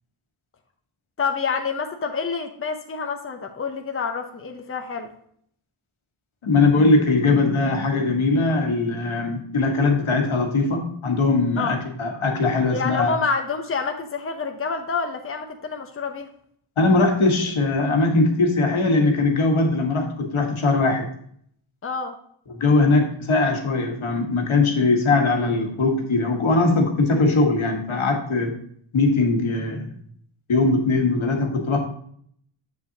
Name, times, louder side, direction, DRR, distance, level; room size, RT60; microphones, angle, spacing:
voice 1, 1.2-5.1 11.6-11.7 12.7-16.3 21.8-22.1, left 5 dB, 25° left, 4 dB, 0.8 m, -27 dB
voice 2, 6.4-13.1 16.8-21.1 22.5-28.6 28.9-29.8 30.5-31.8, left 3 dB, 75° left, 2 dB, 1.6 m, -20 dB
7.3 x 7.3 x 2.9 m, 0.65 s
wide cardioid pair, 85°, 48 cm